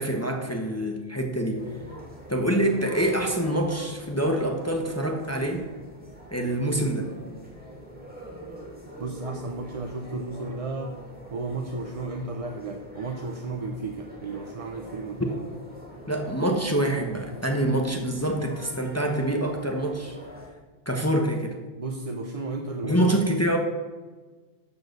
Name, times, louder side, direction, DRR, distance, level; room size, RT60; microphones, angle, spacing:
voice 1, 0.0-1.7 2.3-5.7 6.3-7.1 16.1-20.2 20.9-21.6 22.8-23.6, right 1 dB, 15° left, 2 dB, 0.9 m, -26 dB
sound 1, 1.5-20.5, right 1 dB, 10° right, 2.7 m, -44 dB
voice 2, 9.0-11.0 11.3-15.4 21.8-23.0, right 3 dB, 40° right, 4 dB, 0.6 m, -33 dB
12.5 x 4.8 x 6.6 m, 1.3 s
omnidirectional pair, 1.2 m